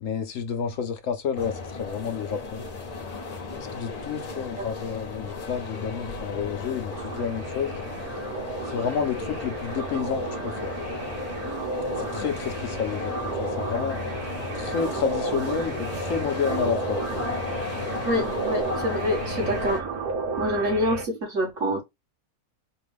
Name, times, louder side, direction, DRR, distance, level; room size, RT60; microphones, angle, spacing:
voice 1, 0.0-2.7 3.6-7.8 8.7-10.7 12.0-14.0 14.5-17.0, left 7 dB, 70° left, 0.9 m, -30 dB
sound 1, 1.3-19.8, left 4 dB, 35° left, 0.7 m, -34 dB
sound 2, 6.9-21.1, right 4 dB, 90° right, 1.5 m, -33 dB
voice 2, 18.0-19.8 20.4-21.8, equal, 60° right, 2.3 m, -26 dB
4.3 x 2.4 x 3.4 m
omnidirectional pair, 1.5 m